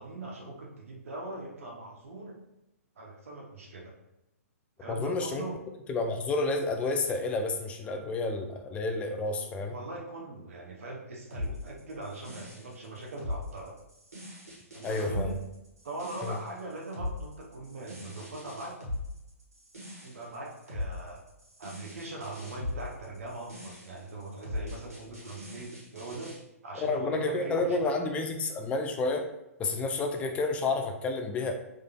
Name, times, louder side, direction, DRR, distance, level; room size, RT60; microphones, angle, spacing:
voice 1, 0.0-2.4 3.0-3.9 4.8-5.6 9.4-13.7 14.7-15.4 15.8-18.8 20.0-21.2 21.6-26.3 26.6-28.1, right 2 dB, 65° right, -2 dB, 0.8 m, -41 dB
voice 2, 4.9-5.5 5.9-9.7 14.8-15.3 16.2-16.4 26.8-29.3 29.6-31.5, left 3 dB, 15° left, 5 dB, 0.4 m, -30 dB
sound 1, 11.3-26.4, left 2 dB, 90° right, 1.3 m, -40 dB
3.7 x 3.2 x 2.2 m, 0.91 s
figure-of-eight pair, 120°, 8 cm